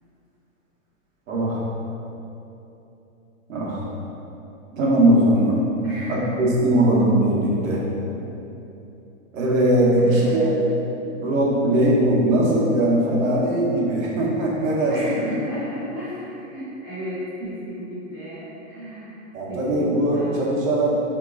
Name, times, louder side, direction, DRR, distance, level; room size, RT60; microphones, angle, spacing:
voice 1, 1.3-1.6 3.5-3.8 4.7-5.7 6.1-7.8 9.3-10.5 11.2-15.2 19.3-21.0, right 1 dB, 85° right, -5 dB, 1.0 m, -20 dB
voice 2, 5.8-6.4 9.9-10.5 14.9-19.2 19.5-20.3, right 1 dB, 15° left, -14 dB, 0.4 m, -33 dB
3.9 x 2.9 x 2.5 m, 3.0 s
hypercardioid pair, 175°, 39 cm